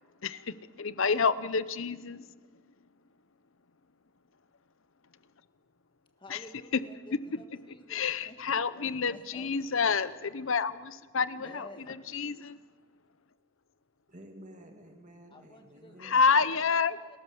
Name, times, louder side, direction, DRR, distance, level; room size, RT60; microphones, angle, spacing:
voice 1, 0.2-2.2 6.3-6.4 6.7-6.8 7.3-7.4 7.9-12.6 16.0-17.0, left 5 dB, 65° left, 15 dB, 0.8 m, -29 dB
voice 2, 6.2-9.5 11.4-12.0 15.3-17.2, left 1 dB, 20° left, 6 dB, 1.8 m, -52 dB
voice 3, 14.1-16.2, right 1 dB, 35° right, 3 dB, 1.9 m, -51 dB
30.0 x 14.0 x 7.2 m, 1.5 s
head